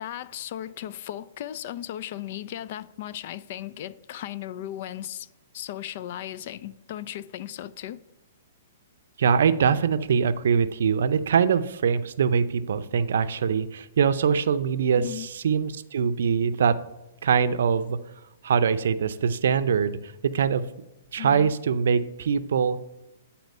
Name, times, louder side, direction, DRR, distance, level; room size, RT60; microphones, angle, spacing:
voice 1, 0.0-5.3 5.5-8.0 14.9-15.3 21.2-21.5, left 12 dB, 50° left, 0.4 m, -36 dB
voice 2, 9.2-16.7 17.2-18.0 18.4-20.0 20.3-20.6 21.1-22.8, right 6 dB, 70° right, 0.5 m, -23 dB
9.3 x 4.2 x 5.4 m
hypercardioid pair, 140°, 0 cm